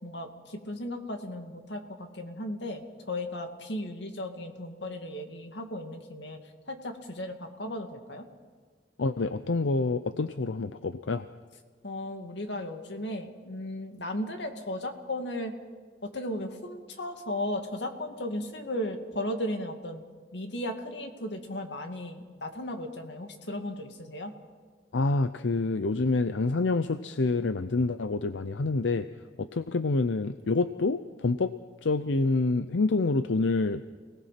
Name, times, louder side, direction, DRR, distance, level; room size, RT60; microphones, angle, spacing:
voice 1, 0.0-6.4 6.7-8.3 11.8-15.5 16.0-20.0 20.3-24.3, left 1 dB, 65° left, 5 dB, 2.4 m, -36 dB
voice 2, 9.0-11.3 24.9-29.1 29.4-31.5 31.8-33.8, left 3 dB, 90° left, 11 dB, 0.7 m, -27 dB
29.0 x 19.0 x 5.9 m, 1.5 s
head